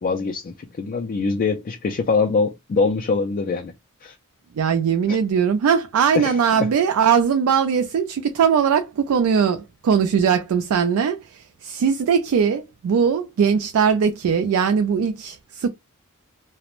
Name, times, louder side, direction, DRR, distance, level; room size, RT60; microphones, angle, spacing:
voice 1, 0.0-3.7 4.0-4.1 5.1-5.2 6.1-6.7, left 4 dB, 40° left, 0.3 m, -23 dB
voice 2, 4.5-15.7, right 7 dB, 70° right, 0.3 m, -20 dB
2.5 x 2.0 x 2.9 m
head